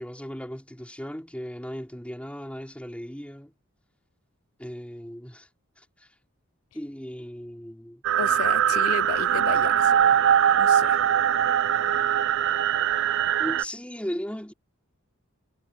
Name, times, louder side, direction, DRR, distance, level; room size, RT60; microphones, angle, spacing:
voice 1, 0.0-3.5 4.6-5.5 5.8-6.1 6.7-8.0 13.4-14.5, equal, 5° left, 4.7 m, -37 dB
sound 1, 8.0-13.6, right 9 dB, 60° right, 0.5 m, -22 dB
voice 2, 8.2-10.1 10.6-11.0, left 7 dB, 75° left, 0.4 m, -33 dB
head